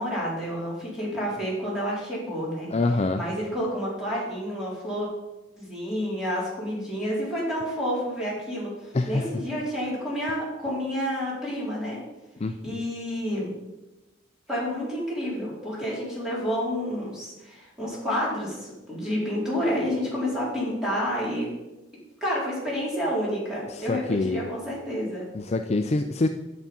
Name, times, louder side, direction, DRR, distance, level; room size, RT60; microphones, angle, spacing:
voice 1, 0.0-2.7 3.1-5.1 5.6-12.0 12.6-13.5 14.5-21.5 22.2-25.3, equal, 5° right, -7 dB, 4.1 m, -29 dB
voice 2, 2.7-3.2 8.9-9.4 12.4-12.8 23.7-24.4 25.3-26.3, left 2 dB, 35° left, 7 dB, 0.4 m, -26 dB
9.6 x 7.2 x 5.4 m, 1.0 s
head